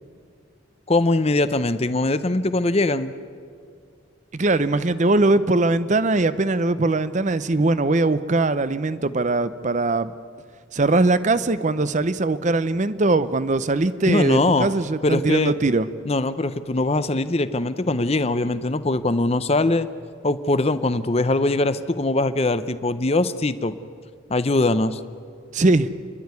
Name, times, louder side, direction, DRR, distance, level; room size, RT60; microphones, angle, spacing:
voice 1, 0.9-3.1 14.1-14.7 15.0-15.5 16.0-19.9 20.2-23.8 24.3-25.0, left 2 dB, 30° left, 13 dB, 0.6 m, -21 dB
voice 2, 4.3-10.1 10.7-15.9 25.5-25.9, right 2 dB, 35° right, 14 dB, 0.6 m, -21 dB
28.5 x 11.5 x 9.5 m, 2.2 s
head